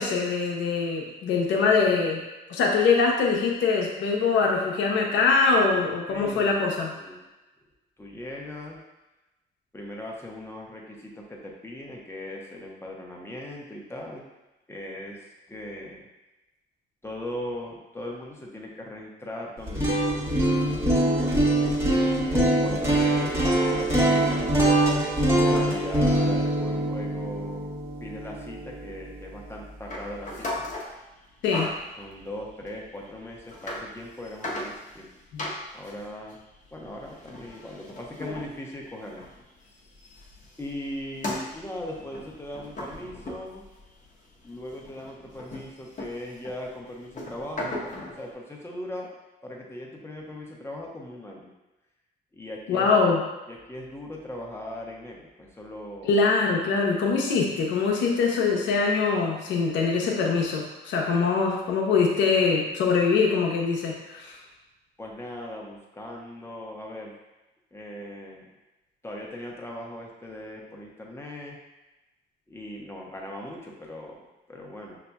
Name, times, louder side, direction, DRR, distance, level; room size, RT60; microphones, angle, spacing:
voice 1, 0.0-2.2 2.5-6.9 31.4-31.7 35.3-35.5 52.7-53.2 56.0-64.4, left 4 dB, 80° left, -1 dB, 0.8 m, -23 dB
voice 2, 6.1-7.2 8.0-8.8 9.7-14.3 14.7-16.0 17.0-20.1 20.4-20.7 22.0-25.0 25.3-27.7 28.0-30.6 32.0-35.1 35.7-36.4 36.7-39.3 40.6-43.7 44.4-49.1 49.4-51.5 52.3-52.9 53.5-56.2 65.0-67.2 67.7-68.5 69.0-71.6 72.5-75.0, left 1 dB, 15° left, -2 dB, 1.0 m, -39 dB
sound 1, 19.6-29.6, right 1 dB, 15° right, 1.2 m, -24 dB
sound 2, 29.9-30.9 31.4-31.9 32.7-32.8 33.4-33.8 34.2-35.1 35.4-39.4 39.7-44.1 44.4-48.2, left 1 dB, 40° left, 1.0 m, -37 dB
5.8 x 2.7 x 2.3 m, 1.1 s
supercardioid pair, 70°, 19 cm